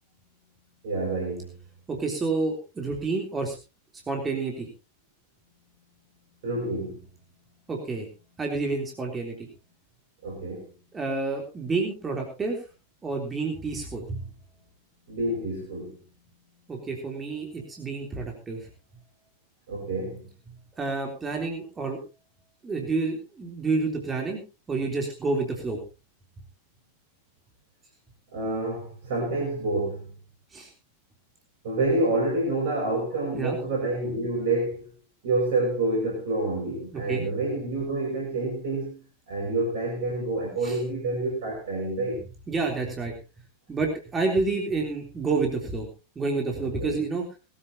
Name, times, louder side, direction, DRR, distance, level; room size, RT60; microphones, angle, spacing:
voice 1, 0.8-1.5 6.4-7.0 10.2-10.7 15.1-16.0 19.7-20.3 28.3-30.1 31.6-34.9 35.2-39.0 39.3-42.2 46.6-47.0, right 2 dB, 55° right, -1 dB, 6.2 m, -28 dB
voice 2, 1.9-3.6 4.1-4.7 7.7-8.1 8.4-9.3 10.9-12.6 13.0-14.2 16.7-18.7 20.8-22.0 22.6-24.4 24.7-25.8 30.5-30.7 33.3-33.6 37.1-37.2 40.6-40.7 42.5-43.1 43.7-45.9 46.1-47.2, right 3 dB, 15° right, 1 dB, 3.5 m, -29 dB
21.0 x 13.5 x 2.9 m, 0.31 s
figure-of-eight pair, 90°, 0 cm